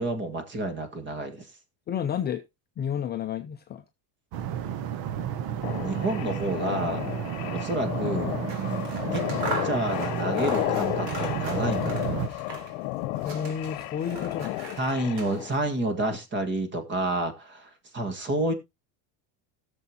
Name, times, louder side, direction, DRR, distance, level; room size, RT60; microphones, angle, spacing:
voice 1, 0.0-1.5 5.8-7.0 7.5-8.4 9.1-9.2 9.6-12.2 14.8-18.5, right 2 dB, 25° right, 1.8 m, -29 dB
voice 2, 1.9-2.4 2.8-3.8 13.2-14.9, left 8 dB, 25° left, 0.5 m, -31 dB
sound 1, 4.3-12.3, right 9 dB, 55° right, 1.0 m, -32 dB
sound 2, 5.6-15.5, left 18 dB, 70° left, 0.9 m, -32 dB
Scissors, 8.3-12.9 13.1-15.7, right 4 dB, 80° right, 2.9 m, -40 dB
17.5 x 6.9 x 2.8 m
cardioid pair, 160°, 44 cm